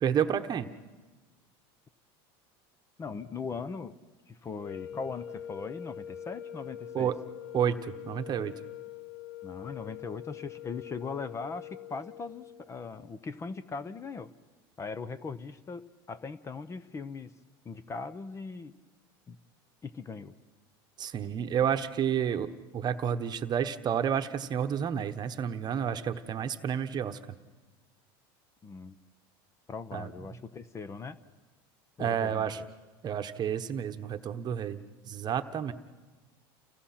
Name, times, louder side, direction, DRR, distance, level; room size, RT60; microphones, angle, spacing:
voice 1, 0.0-0.7 6.9-7.2 7.5-8.5 21.0-27.2 29.9-30.1 32.0-32.6 33.0-34.8 35.1-35.7, right 8 dB, 35° right, 9 dB, 1.1 m, -30 dB
voice 2, 3.0-4.0 4.3-7.1 9.4-14.3 14.8-17.3 17.6-18.7 19.3-19.4 19.8-20.4 28.6-29.0 29.7-31.2 32.0-32.5, left 4 dB, 25° left, 14 dB, 0.8 m, -39 dB
sound 1, 4.5-12.7, left 10 dB, 90° left, 1.3 m, -44 dB
30.0 x 17.0 x 5.9 m, 1.2 s
supercardioid pair, 120°, 13 cm